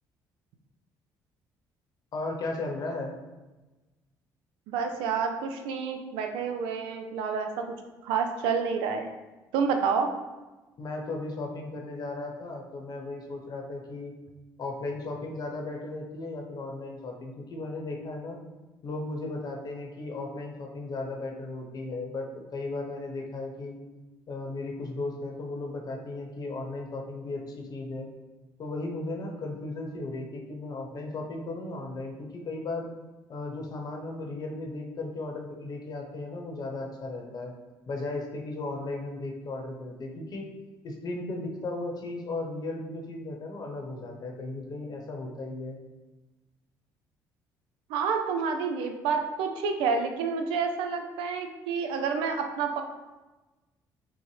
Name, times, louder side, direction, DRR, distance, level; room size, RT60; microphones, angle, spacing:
voice 1, 2.1-3.2 10.8-14.1 14.6-18.4 18.8-23.7 24.3-28.1 28.6-32.9 33.3-37.5 37.9-40.5 40.8-45.8, left 2 dB, 50° left, 1 dB, 0.9 m, -36 dB
voice 2, 4.7-7.7 8.0-9.1 9.5-10.1 47.9-52.8, right 5 dB, 85° right, 5 dB, 0.5 m, -29 dB
6.0 x 2.1 x 3.2 m, 1.2 s
supercardioid pair, 75°, 8 cm